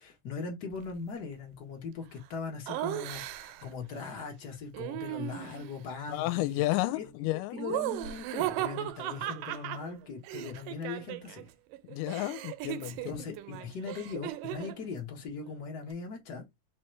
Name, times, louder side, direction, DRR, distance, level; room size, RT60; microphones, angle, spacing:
voice 1, 0.0-6.6 6.9-7.1 7.5-11.4 13.1-16.4, left 5 dB, 60° left, 1.1 m, -40 dB
Laughter, 2.7-3.7 4.7-5.8 7.6-11.4 11.7-14.8, right 14 dB, 80° right, 2.1 m, -37 dB
voice 2, 6.1-7.6 11.8-13.4, left 17 dB, 85° left, 2.2 m, -32 dB
4.8 x 3.1 x 3.1 m
omnidirectional pair, 3.9 m